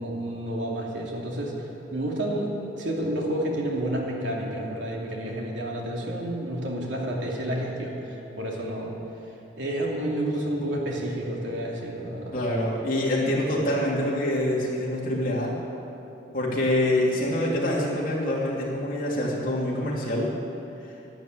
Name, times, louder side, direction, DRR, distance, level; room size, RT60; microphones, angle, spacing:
voice 1, 0.0-1.5 1.9-2.5 2.8-8.9 9.6-12.3, right 1 dB, 80° right, -2 dB, 2.8 m, -30 dB
voice 2, 12.3-15.5 16.3-20.3, left 1 dB, 45° left, -4 dB, 3.0 m, -25 dB
12.0 x 11.5 x 9.0 m, 3.0 s
head